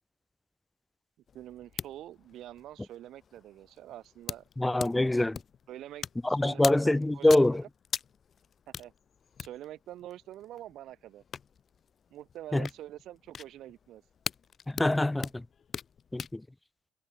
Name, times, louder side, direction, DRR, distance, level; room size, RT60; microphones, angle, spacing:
sound 1, 1.3-16.4, left 7 dB, 45° left, 1.5 m, -43 dB
voice 1, 1.3-5.0 5.7-7.7 8.7-8.9 9.4-11.2 12.1-14.0, right 13 dB, 60° right, 6.0 m, -46 dB
voice 2, 4.6-5.4 6.2-7.6 12.5-12.7 14.7-15.4 16.1-16.4, left 1 dB, 10° left, 0.4 m, -24 dB
figure-of-eight pair, 50°, 0 cm